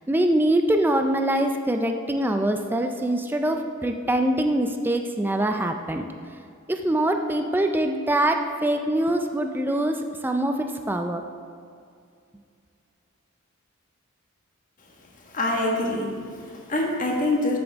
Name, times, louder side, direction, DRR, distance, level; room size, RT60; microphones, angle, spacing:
voice 1, 0.1-6.1 6.7-11.3, right 1 dB, 10° right, 5 dB, 0.4 m, -24 dB
voice 2, 15.3-17.6, left 2 dB, 40° left, -1 dB, 1.6 m, -25 dB
13.0 x 7.2 x 3.6 m, 2.3 s
head